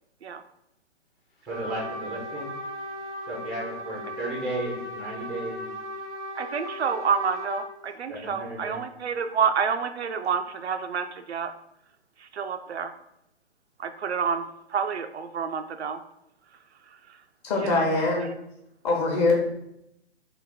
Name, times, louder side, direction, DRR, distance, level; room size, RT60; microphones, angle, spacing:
Trumpet, 1.5-7.7, equal, 45° left, 1.1 m, -37 dB
voice 1, 1.5-2.5 3.3-5.7 8.1-8.8, right 2 dB, ahead, -5 dB, 0.5 m, -34 dB
voice 2, 6.3-11.5 12.2-12.9 13.8-16.0 17.1-17.2 17.6-18.3, right 6 dB, 70° right, 7 dB, 0.5 m, -29 dB
voice 3, 17.4-18.2 18.8-19.3, left 3 dB, 25° left, -1 dB, 0.9 m, -23 dB
3.9 x 2.5 x 4.7 m, 0.80 s
figure-of-eight pair, 130°, 34 cm